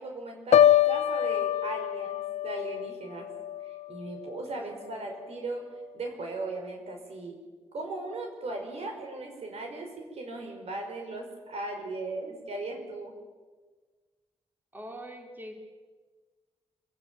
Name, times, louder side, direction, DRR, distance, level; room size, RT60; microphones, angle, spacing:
voice 1, 0.0-3.3 3.6-5.6 5.9-7.4 7.7-13.1, right 2 dB, 70° right, 3 dB, 5.5 m, -37 dB
Piano, 0.5-4.5 4.9-5.2, left 10 dB, 90° left, 0.7 m, -25 dB
voice 2, 14.7-15.5, equal, 15° right, 2 dB, 3.2 m, -42 dB
26.0 x 16.5 x 9.1 m, 1.4 s
wide cardioid pair, 115°, 11 cm